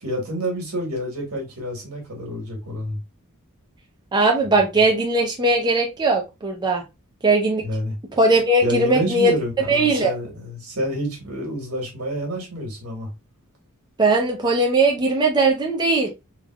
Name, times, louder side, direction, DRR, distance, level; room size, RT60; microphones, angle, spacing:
voice 1, 0.0-3.0 7.6-8.0 8.6-13.1, equal, 85° right, 1.4 m, -28 dB
voice 2, 4.1-6.8 7.2-7.6 8.2-9.3 9.7-10.1 14.0-16.1, right 2 dB, 20° right, 0.5 m, -19 dB
3.4 x 2.4 x 2.2 m
head